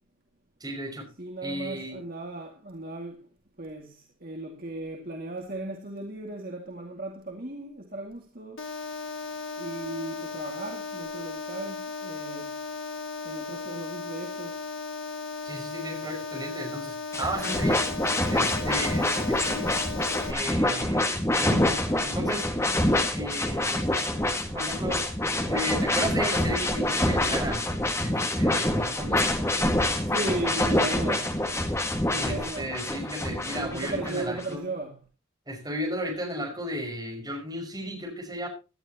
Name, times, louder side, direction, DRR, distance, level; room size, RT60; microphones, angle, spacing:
voice 1, 0.6-1.1 1.4-2.0 15.4-17.8 18.3-19.8 20.3-22.5 23.1-23.8 24.5-25.0 25.5-27.7 28.0-29.2 32.1-34.6 35.5-38.5, equal, 20° right, 5.5 m, -34 dB
voice 2, 1.2-3.3 3.6-8.6 9.6-12.5 13.2-14.6 30.1-31.4 32.1-32.8 33.6-35.0, right 2 dB, 45° right, 2.2 m, -36 dB
sound 1, 8.6-20.3, left 4 dB, 85° left, 2.4 m, -36 dB
sound 2, 17.1-34.4, left 1 dB, 15° left, 1.8 m, -26 dB
17.5 x 12.5 x 2.9 m
head